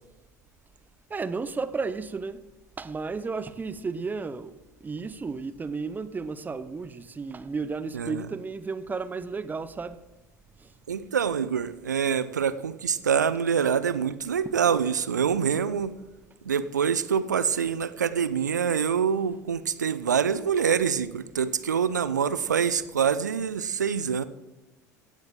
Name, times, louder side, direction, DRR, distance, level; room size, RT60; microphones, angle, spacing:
voice 1, 1.1-2.4 2.8-10.0 10.6-10.7, right 4 dB, 20° right, 0.9 m, -33 dB
voice 2, 7.9-8.3 10.9-15.9 16.4-24.2, right 7 dB, 80° right, 0.7 m, -25 dB
16.5 x 15.0 x 3.8 m
figure-of-eight pair, 75°, 9 cm